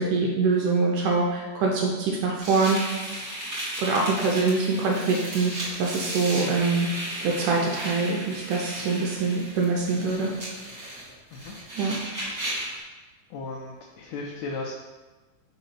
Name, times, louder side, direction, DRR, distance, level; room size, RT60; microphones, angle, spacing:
voice 1, 0.0-2.8 3.8-6.9 7.2-10.3 11.8-12.0, right 4 dB, 80° right, -1 dB, 1.9 m, -24 dB
sound 1, 2.4-12.8, right 1 dB, 35° right, 2.0 m, -35 dB
voice 2, 13.3-14.7, left 3 dB, 90° left, -1 dB, 1.7 m, -36 dB
4.9 x 4.1 x 5.6 m, 1.2 s
omnidirectional pair, 4.3 m